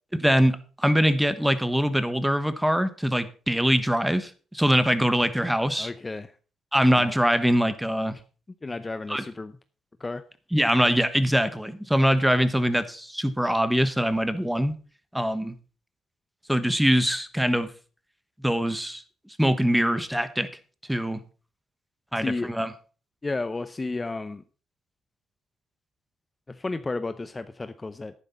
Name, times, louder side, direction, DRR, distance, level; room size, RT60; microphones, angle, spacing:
voice 1, 0.2-5.9 6.7-8.1 9.1-9.2 10.5-14.7 15.1-15.5 16.5-17.7 18.4-19.0 19.4-20.5 20.9-21.2 22.1-22.7, equal, 5° right, 13 dB, 1.1 m, -23 dB
voice 2, 5.8-6.3 7.0-7.2 8.6-9.5 10.0-10.2 22.2-22.5 23.2-24.4 26.5-28.1, left 3 dB, 20° left, 11 dB, 0.6 m, -32 dB
11.0 x 9.8 x 4.3 m, 0.38 s
cardioid pair, 90°, 0 cm